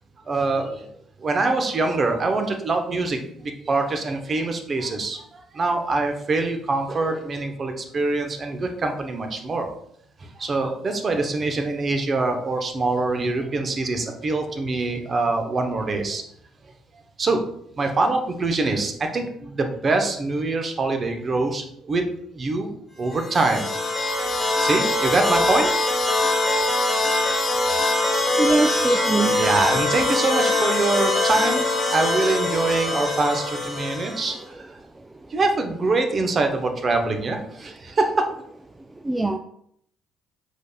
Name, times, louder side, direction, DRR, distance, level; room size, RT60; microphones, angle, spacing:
voice 1, 0.2-0.9 1.2-9.7 10.2-16.2 17.2-17.4 17.8-22.0 22.3-22.7 23.0-26.0 26.4-26.7 28.1-28.3 28.6-29.0 29.3-34.8 35.3-38.3, right 3 dB, 40° right, 4 dB, 0.8 m, -24 dB
sound 1, 23.1-34.4, left 2 dB, 25° left, 1.6 m, -23 dB
voice 2, 28.3-29.3 39.0-39.4, right 2 dB, 15° right, 5 dB, 0.3 m, -22 dB
5.0 x 4.0 x 2.2 m, 0.68 s
hypercardioid pair, 50°, 0 cm